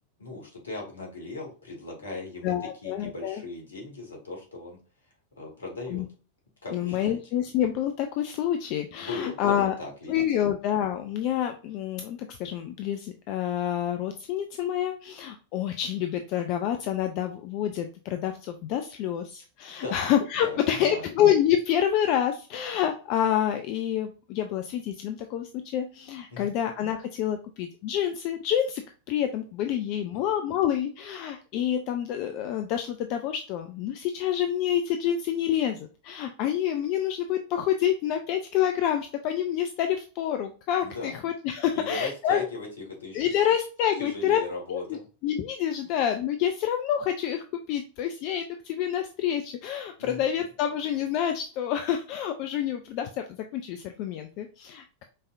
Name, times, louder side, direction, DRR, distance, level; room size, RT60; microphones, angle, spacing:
voice 1, 0.2-4.8 5.4-6.1 6.6-7.2 9.0-10.2 19.8-20.1 20.4-21.1 26.3-26.6 30.1-30.2 40.8-41.2 41.7-43.2 44.0-45.0 45.8-45.9 50.0-50.2, left 3 dB, 70° left, 0 dB, 1.8 m, -38 dB
voice 2, 2.4-3.4 5.9-6.1 6.7-9.7 10.1-28.8 29.1-42.5 43.1-44.4 44.7-44.8 45.2-53.2 53.5-55.0, left 10 dB, 45° left, 6 dB, 0.5 m, -28 dB
5.3 x 3.5 x 2.5 m, 0.37 s
figure-of-eight pair, 90°, 0 cm